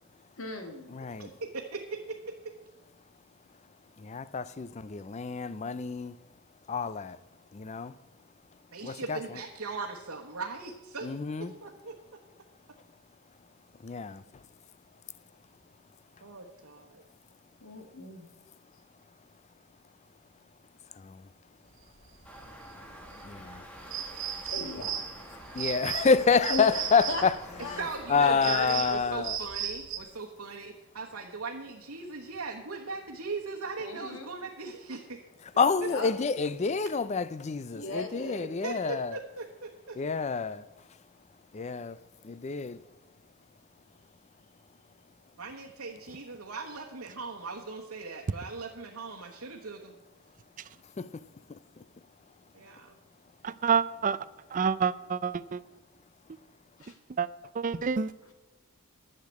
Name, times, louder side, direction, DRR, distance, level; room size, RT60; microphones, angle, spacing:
voice 1, 0.4-0.9 17.6-18.3 24.4-25.0 26.5-26.8 27.1-27.2 27.6-27.8 28.1-28.5 33.8-34.3 35.8-36.1 37.7-38.5 56.8-57.0 58.2-58.3, left 3 dB, 65° left, 1.9 m, -38 dB
voice 2, 0.9-1.3 4.0-6.2 6.7-7.2 7.5-7.9 8.8-9.4 11.0-11.5 13.8-14.2 21.0-21.2 23.2-23.6 25.5-27.3 27.7-27.8 28.1-29.4 35.6-39.2 40.0-40.6 41.5-42.8 51.0-51.2 51.5-51.8, left 5 dB, 30° left, 0.4 m, -28 dB
voice 3, 8.7-11.1 11.4-11.9 16.2-17.0 27.8-35.2 38.6-40.0 45.4-50.0 52.5-52.9, right 3 dB, 80° right, 1.3 m, -39 dB
sound 1, 21.9-30.0, right 9 dB, 60° right, 1.3 m, -37 dB
sound 2, 22.2-29.0, equal, 5° left, 1.5 m, -48 dB
voice 4, 53.4-54.2 54.5-55.6 57.2-57.3 57.6-58.1, right 6 dB, 35° right, 0.4 m, -27 dB
12.0 x 6.7 x 8.4 m
head